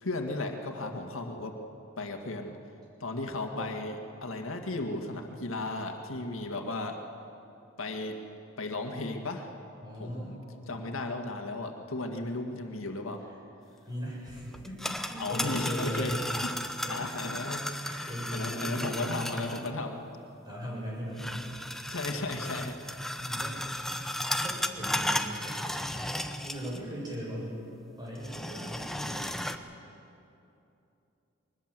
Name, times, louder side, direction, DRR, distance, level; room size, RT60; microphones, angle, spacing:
voice 1, 0.0-1.6 2.0-2.6 3.0-7.0 7.8-8.2 8.6-9.5 10.0-10.4 10.7-13.2 15.2-16.5 16.9-17.6 18.0-20.0 21.9-22.8, left 2 dB, 85° left, 4 dB, 1.9 m, -35 dB
voice 2, 9.8-10.9 12.1-12.2 13.9-16.3 16.8-19.6 20.4-21.3 23.2-23.6 24.4-25.6 26.4-27.6 28.0-29.3, equal, 20° right, -5 dB, 7.5 m, -39 dB
sound 1, 14.5-19.7 21.2-26.9 27.1-27.2 28.1-29.6, left 1 dB, ahead, 0.8 m, -35 dB
22.5 x 20.0 x 7.6 m, 2.8 s
head